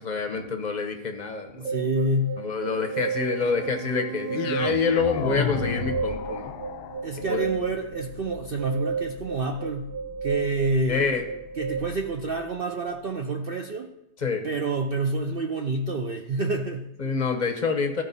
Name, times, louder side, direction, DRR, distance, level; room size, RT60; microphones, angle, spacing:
voice 1, 0.0-1.9 2.4-6.5 7.3-7.5 10.9-11.3 14.2-14.4 17.0-18.0, left 5 dB, 40° left, 4 dB, 0.7 m, -27 dB
sound 1, 1.6-11.8, right 6 dB, 55° right, 1.7 m, -33 dB
voice 2, 1.6-3.1 7.0-9.9 10.2-11.1 11.6-13.9 14.4-17.2, right 2 dB, 70° right, 3 dB, 0.5 m, -28 dB
sound 2, 4.3-12.5, left 8 dB, 80° left, 1.1 m, -35 dB
14.0 x 4.9 x 4.0 m, 0.86 s
omnidirectional pair, 1.7 m